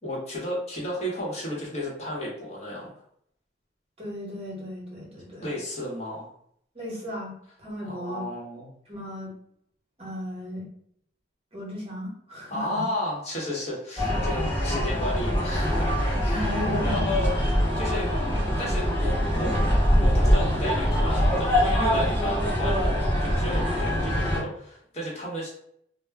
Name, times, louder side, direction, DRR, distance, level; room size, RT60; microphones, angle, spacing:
voice 1, 0.0-2.9 5.4-6.3 7.8-8.7 12.5-18.1 18.6-19.5 20.0-22.9 23.2-25.5, left 1 dB, 35° left, -4 dB, 1.0 m, -33 dB
voice 2, 4.0-5.5 6.7-8.2 8.9-9.3 10.0-10.7 11.5-12.8 16.3-17.1 21.7-22.0, equal, 35° right, -3 dB, 0.9 m, -35 dB
sound 1, 14.0-24.4, equal, 10° left, 1.0 m, -23 dB
2.1 x 2.1 x 3.4 m, 0.68 s
head